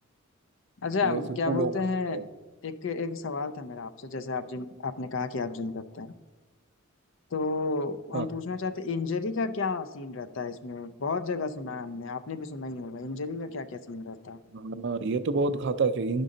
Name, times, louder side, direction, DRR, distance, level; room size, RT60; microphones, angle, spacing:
voice 1, 0.8-2.2 2.6-6.1 7.3-14.4, left 4 dB, 60° left, 10 dB, 0.5 m, -32 dB
voice 2, 14.5-16.2, right 4 dB, 55° right, 12 dB, 0.4 m, -28 dB
12.0 x 5.2 x 3.8 m, 1.2 s
head